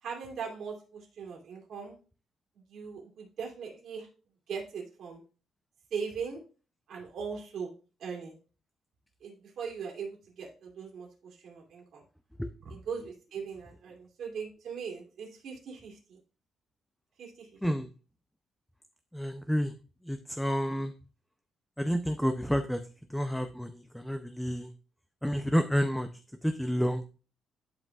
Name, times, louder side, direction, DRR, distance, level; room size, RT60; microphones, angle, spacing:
voice 1, 0.0-2.0 2.7-4.1 4.5-5.2 5.9-6.4 6.9-7.7 8.0-8.4 9.2-12.0 12.6-16.2 17.2-17.5, right 6 dB, 70° right, -1 dB, 2.4 m, -40 dB
voice 2, 19.1-19.7 20.0-20.9 21.8-22.8 23.1-24.7 25.2-26.1 26.4-27.1, equal, ahead, 8 dB, 0.4 m, -29 dB
11.0 x 4.9 x 2.3 m, 0.36 s
cardioid pair, 135°, 0 cm